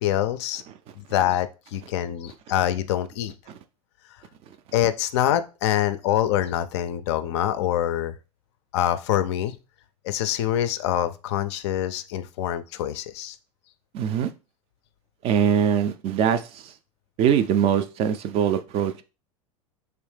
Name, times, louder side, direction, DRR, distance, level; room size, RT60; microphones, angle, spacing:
voice 1, 0.0-0.6 1.0-3.3 4.7-8.1 8.7-9.6 10.0-13.4, left 11 dB, 50° left, 12 dB, 0.4 m, -25 dB
voice 2, 13.9-14.3 15.2-16.7 17.2-19.0, right 8 dB, 35° right, 10 dB, 0.3 m, -22 dB
3.3 x 2.9 x 3.2 m, 0.31 s
figure-of-eight pair, 80°, 18 cm